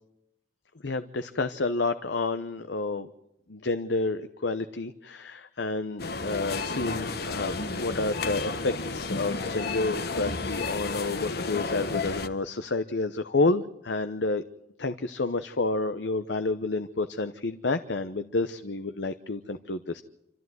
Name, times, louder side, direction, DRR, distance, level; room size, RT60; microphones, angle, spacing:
voice 1, 0.8-3.1 3.5-14.4 14.8-20.0, left 3 dB, 85° left, 10 dB, 0.9 m, -29 dB
sound 1, 6.0-12.3, left 3 dB, 60° left, 1.3 m, -32 dB
27.5 x 14.0 x 9.4 m, 0.86 s
head